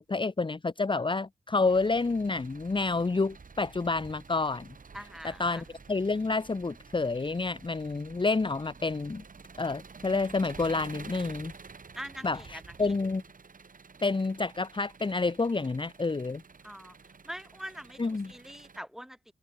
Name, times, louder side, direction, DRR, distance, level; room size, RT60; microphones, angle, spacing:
voice 1, 0.0-4.7 5.2-9.2 9.6-11.5 12.2-13.2 14.0-16.4 18.0-18.3, left 3 dB, 30° left, 1.1 m, -29 dB
Engine, 1.7-18.8, right 5 dB, 55° right, 5.8 m, -50 dB
voice 2, 4.9-5.7 12.0-12.9 16.6-17.0 17.2-19.3, equal, ahead, 3.5 m, -43 dB
supercardioid pair, 40°, 17 cm